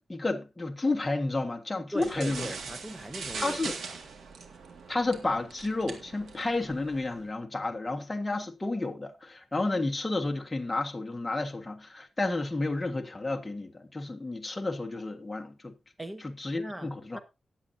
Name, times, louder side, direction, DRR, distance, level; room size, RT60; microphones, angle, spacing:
voice 1, 0.1-2.5 3.4-3.7 4.9-15.7 16.2-17.2, left 2 dB, 15° left, 1.5 m, -31 dB
voice 2, 1.9-3.6 3.9-4.0 16.0-16.3 16.6-17.2, right 1 dB, 15° right, 1.2 m, -39 dB
sound 1, 2.0-7.3, right 5 dB, 85° right, 2.0 m, -41 dB
19.0 x 7.7 x 2.7 m
wide cardioid pair, 125°, 0 cm